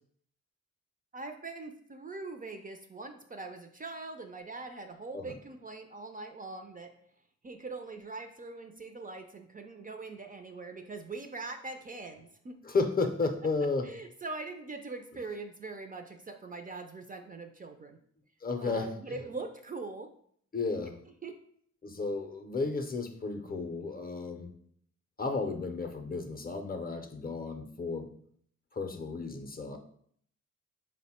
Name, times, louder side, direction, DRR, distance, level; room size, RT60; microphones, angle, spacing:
voice 1, 1.1-6.9 7.4-12.6 13.8-18.0 18.6-20.1 21.2-21.4, right 3 dB, 30° right, 6 dB, 0.4 m, -42 dB
voice 2, 12.6-13.9 18.4-18.9 20.5-21.0 21.8-24.5 25.2-28.1 28.7-29.8, left 3 dB, 30° left, 6 dB, 0.5 m, -33 dB
4.1 x 2.1 x 4.1 m, 0.63 s
cardioid pair, 70°, 29 cm